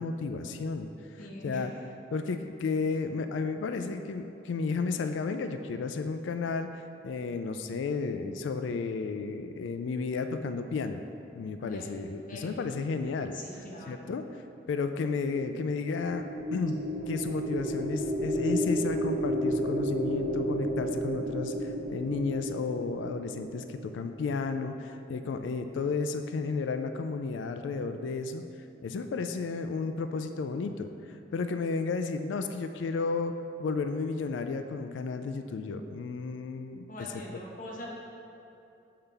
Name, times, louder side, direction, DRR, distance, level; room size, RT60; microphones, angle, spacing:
voice 1, 0.0-1.7 2.1-11.1 11.3-14.4 14.7-28.4 28.8-36.9 37.3-37.4, left 4 dB, 90° left, 8 dB, 0.3 m, -33 dB
voice 2, 1.2-1.7 11.7-11.8 12.3-12.5 13.3-14.1 36.9-37.9, left 1 dB, 50° left, -2 dB, 1.1 m, -42 dB
sound 1, 16.0-24.3, right 1 dB, 45° right, 0.6 m, -32 dB
6.7 x 5.6 x 3.4 m, 2.8 s
head